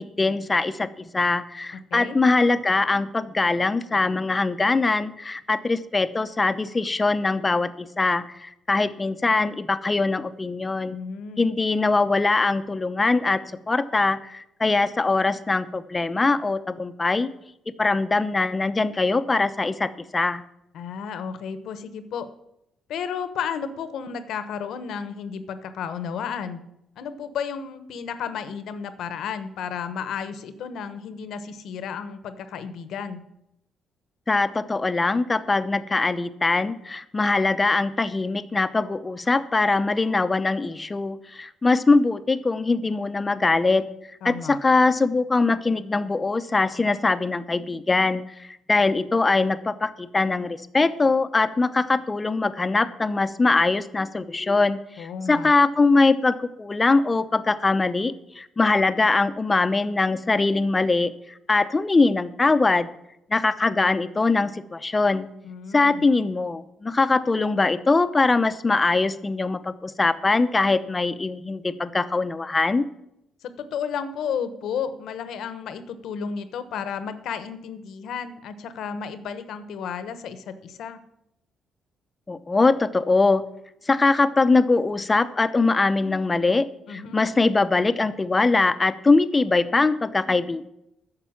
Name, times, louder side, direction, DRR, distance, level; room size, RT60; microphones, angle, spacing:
voice 1, 0.0-11.0 11.4-17.3 17.8-20.4 34.3-43.9 44.2-61.1 61.5-62.9 63.3-65.3 65.7-72.8 82.3-83.4 83.9-90.7, left 3 dB, 25° left, 12 dB, 0.7 m, -22 dB
voice 2, 1.7-2.2 10.9-11.5 20.7-22.3 22.9-26.6 27.0-33.2 44.2-44.6 55.0-55.5 65.4-66.0 73.4-81.0 86.9-87.3, left 7 dB, 75° left, 11 dB, 1.1 m, -33 dB
10.0 x 6.8 x 8.6 m, 0.82 s
cardioid pair, 90°, 0 cm